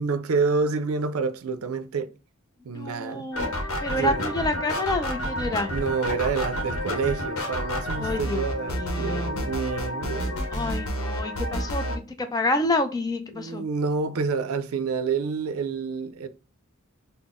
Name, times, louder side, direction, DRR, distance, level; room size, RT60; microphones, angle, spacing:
voice 1, 0.0-2.1 2.6-3.3 3.9-4.3 5.7-10.5 13.3-16.3, right 4 dB, 85° right, 0.4 m, -28 dB
voice 2, 2.7-3.5 3.8-5.7 8.0-8.4 8.7-9.3 10.5-13.6, left 2 dB, 20° left, 0.4 m, -28 dB
sound 1, 3.3-12.0, equal, 85° left, 0.8 m, -30 dB
4.0 x 2.0 x 3.5 m
head